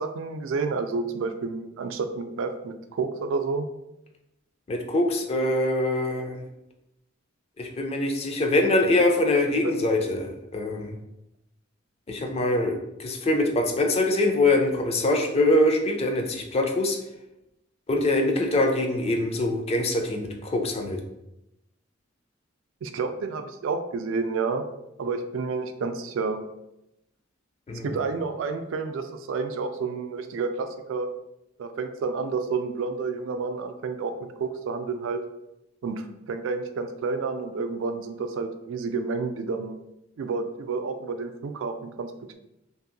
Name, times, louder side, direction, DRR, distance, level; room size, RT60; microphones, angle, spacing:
voice 1, 0.0-3.7 9.6-9.7 22.8-24.6 25.0-26.4 27.8-31.1 31.6-34.1 34.4-35.2 35.8-39.7 40.2-42.4, right 4 dB, 70° right, 8 dB, 0.3 m, -30 dB
voice 2, 4.7-6.4 7.6-10.9 12.1-17.0 17.9-21.0 27.7-28.0, left 2 dB, 30° left, 3 dB, 0.4 m, -24 dB
2.7 x 2.6 x 2.6 m, 0.88 s
head